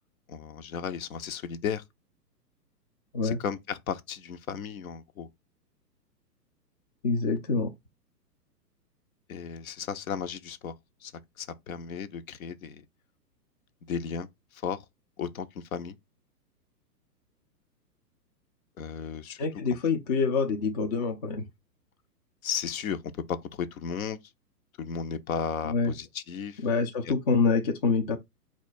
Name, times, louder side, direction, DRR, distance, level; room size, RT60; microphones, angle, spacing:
voice 1, 0.3-1.8 3.2-5.3 9.3-10.7 11.0-11.1 11.4-12.8 13.8-14.8 15.2-16.0 18.8-19.4 22.4-23.0 23.3-24.2 24.8-26.6 27.0-27.1, left 7 dB, 60° left, 0.7 m, -34 dB
voice 2, 7.0-7.7 19.4-21.4 25.6-25.9 26.6-28.2, left 4 dB, 25° left, 0.4 m, -26 dB
4.3 x 2.4 x 4.1 m
figure-of-eight pair, 120°, 49 cm